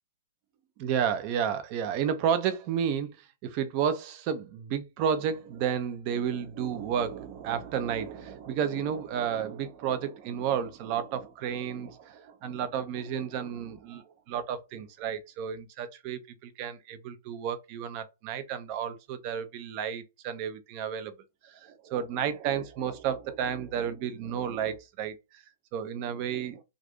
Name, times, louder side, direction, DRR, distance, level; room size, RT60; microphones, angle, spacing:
voice 1, 0.8-4.4 4.7-21.1 21.4-25.4 25.7-26.6, right 8 dB, 40° right, 0.5 m, -32 dB
2.5 x 2.4 x 3.4 m
hypercardioid pair, 125°, 0 cm